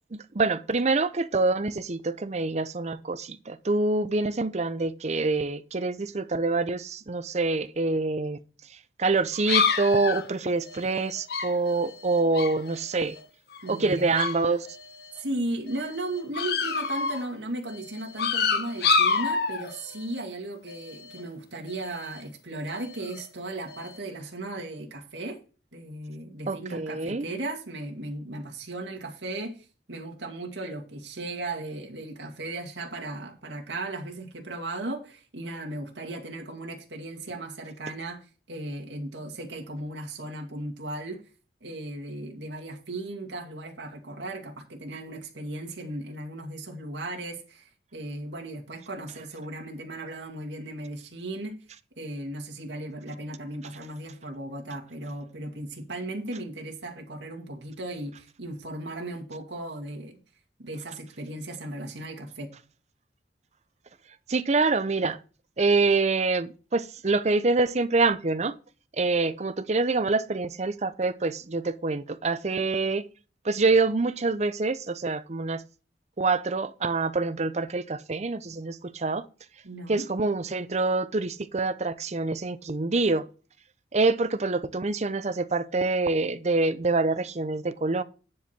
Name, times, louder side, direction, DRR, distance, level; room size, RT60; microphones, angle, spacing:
voice 1, 0.3-8.4 9.0-13.2 13.7-14.7 26.5-27.3 64.3-65.2 65.6-68.6 69.0-73.0 73.4-75.6 76.2-79.2 79.9-83.3 83.9-88.0, right 3 dB, 40° right, 0.6 m, -26 dB
sound 1, 9.3-13.2 13.5-14.4 14.7-15.2 15.7-17.3 17.7-20.2 20.7-21.2 21.7-22.2 22.7-23.3 23.7-24.0, left 5 dB, 60° left, 1.0 m, -29 dB
voice 2, 13.6-14.1 15.2-25.4 25.7-41.2 41.6-51.5 52.0-60.2 60.6-62.5 79.6-80.0, right 2 dB, 90° right, 2.3 m, -36 dB
10.0 x 4.8 x 5.9 m
head